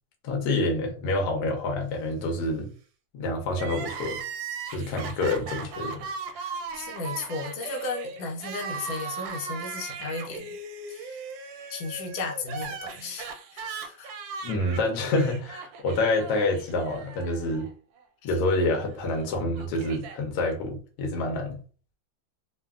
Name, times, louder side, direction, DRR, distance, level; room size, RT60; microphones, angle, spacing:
voice 1, 0.2-2.7 3.1-4.2 4.7-6.1 14.4-17.7 18.2-21.6, left 2 dB, 65° left, 1.1 m, -27 dB
Crying sobbing, 3.5-17.7 18.0-18.1 19.1-20.2, right 5 dB, 80° right, 1.2 m, -38 dB
voice 2, 6.3-10.5 10.9-11.2 11.7-14.2 18.2-18.3, left 3 dB, 85° left, 1.4 m, -35 dB
3.3 x 2.1 x 2.3 m
omnidirectional pair, 2.1 m